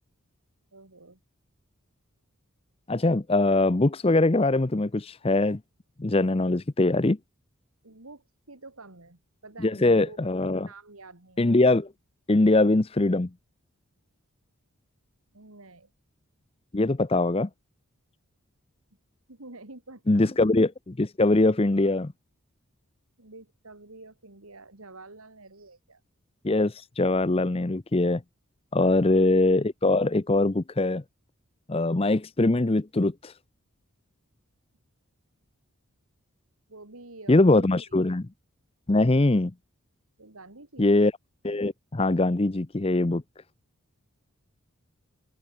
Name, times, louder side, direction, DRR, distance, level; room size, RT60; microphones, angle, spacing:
voice 1, 0.7-1.2 7.8-10.2 10.7-11.7 15.3-15.9 19.3-20.3 23.2-26.0 28.8-29.0 36.7-38.2 40.2-40.9, right 2 dB, 75° right, 2.9 m, -48 dB
voice 2, 2.9-5.6 6.0-7.2 9.6-10.7 11.4-11.9 12.3-13.3 16.7-17.5 20.1-22.1 26.4-28.2 28.7-31.0 31.7-33.3 37.3-38.2 38.9-39.5 40.8-41.1 41.4-43.2, left 2 dB, 25° left, 0.6 m, -22 dB
open air
head